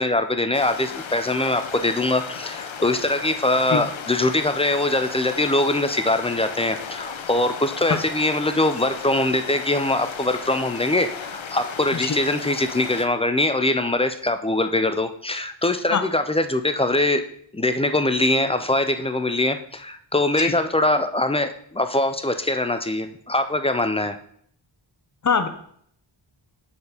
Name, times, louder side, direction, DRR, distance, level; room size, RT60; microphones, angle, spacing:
voice 1, 0.0-17.2 17.5-24.2, left 2 dB, 15° left, 9 dB, 0.4 m, -22 dB
sound 1, 0.5-13.1, left 7 dB, 75° left, 0.8 m, -35 dB
voice 2, 3.7-3.8 12.0-12.2 15.9-16.0 20.4-20.5 25.2-25.5, left 6 dB, 40° left, 8 dB, 0.8 m, -22 dB
6.9 x 4.3 x 5.0 m, 0.65 s
wide cardioid pair, 100°, 47 cm